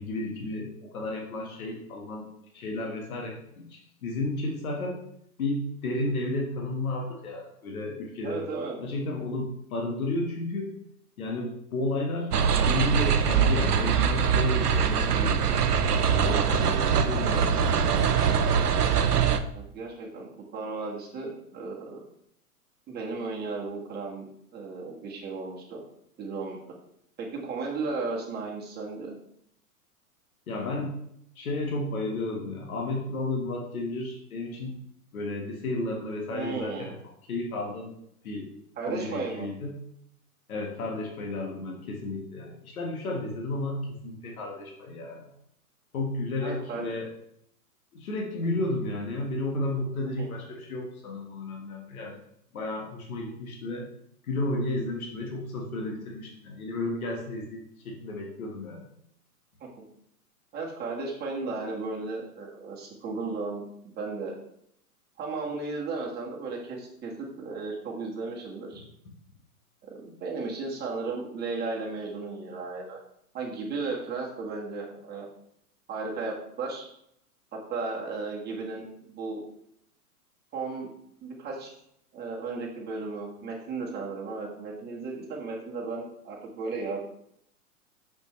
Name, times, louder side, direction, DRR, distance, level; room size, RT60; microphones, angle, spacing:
voice 1, 0.0-2.3 2.5-5.0 5.4-8.5 8.8-10.7 11.2-12.4 12.6-15.6 16.0-17.9 30.5-30.9 31.3-34.8 35.1-37.0 37.3-37.9 38.2-38.5 38.9-39.7 40.5-45.2 45.9-47.1 47.9-52.2 52.5-53.9 54.2-58.8, left 2 dB, 65° left, 0 dB, 1.6 m, -32 dB
voice 2, 8.2-8.8 19.5-22.1 22.9-25.8 26.2-26.6 27.2-29.2 36.3-36.9 38.8-39.5 46.4-46.9 50.2-50.3 59.6-59.7 60.5-64.3 65.2-68.8 69.8-73.0 73.3-75.3 75.9-76.9 77.5-79.4 80.5-80.9 81.2-81.7 82.1-87.0, right 3 dB, 20° right, -2 dB, 1.6 m, -35 dB
sound 1, 12.3-19.4, right 7 dB, 85° right, 0.7 m, -23 dB
6.5 x 5.3 x 3.1 m, 0.73 s
figure-of-eight pair, 105°, 46 cm